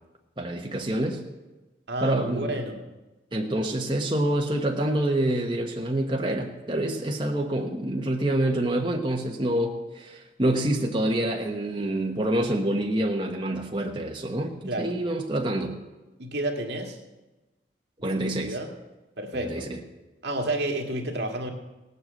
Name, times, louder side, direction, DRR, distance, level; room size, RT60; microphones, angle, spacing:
voice 1, 0.4-1.2 2.0-2.6 3.3-15.8 18.0-18.6 19.3-19.8, right 1 dB, 25° right, 0 dB, 1.1 m, -27 dB
voice 2, 1.9-2.8 14.7-15.0 16.2-17.0 18.0-18.7 19.2-19.7 20.2-21.5, right 1 dB, 70° right, 2 dB, 2.0 m, -30 dB
18.0 x 7.9 x 7.7 m, 1.1 s
head